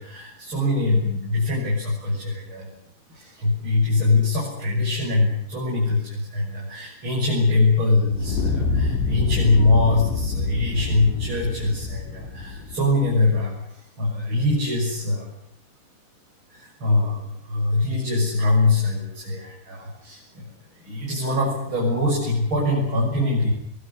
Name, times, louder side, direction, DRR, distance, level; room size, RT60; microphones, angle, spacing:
voice 1, 0.0-2.7 3.1-15.3 16.5-23.5, left 2 dB, 25° right, -3 dB, 7.7 m, -23 dB
Fire, 8.1-13.3, left 4 dB, 85° left, 5.7 m, -27 dB
23.0 x 22.0 x 9.9 m, 0.73 s
omnidirectional pair, 5.0 m